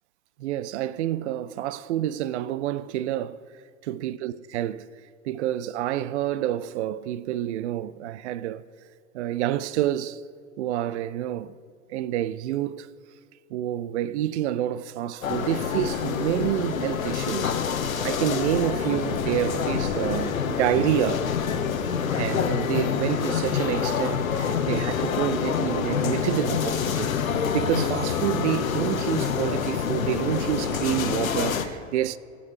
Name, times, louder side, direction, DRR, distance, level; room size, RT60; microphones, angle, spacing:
voice 1, 0.4-3.4 3.8-4.9 5.2-8.6 9.1-10.2 10.6-11.6 11.9-12.9 13.5-17.6 17.9-21.3 22.1-27.2 27.5-32.2, right 12 dB, 55° right, 0.5 m, -28 dB
sound 1, 15.2-31.7, left 7 dB, 80° left, 1.1 m, -27 dB
19.0 x 7.5 x 3.2 m
figure-of-eight pair, 105°, 41 cm